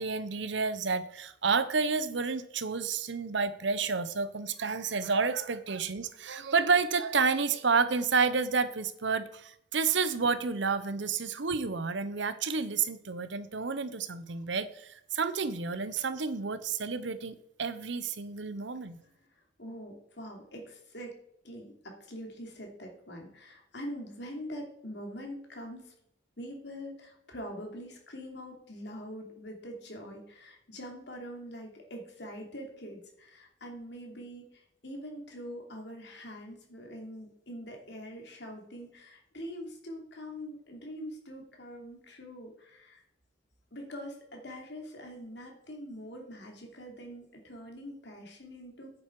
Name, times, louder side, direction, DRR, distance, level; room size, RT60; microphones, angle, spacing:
voice 1, 0.0-19.0, right 5 dB, 65° right, 13 dB, 0.8 m, -30 dB
voice 2, 19.6-21.2 21.4-25.9 26.4-43.0 43.7-48.9, equal, 60° left, 2 dB, 2.8 m, -44 dB
9.7 x 7.7 x 4.7 m, 0.76 s
head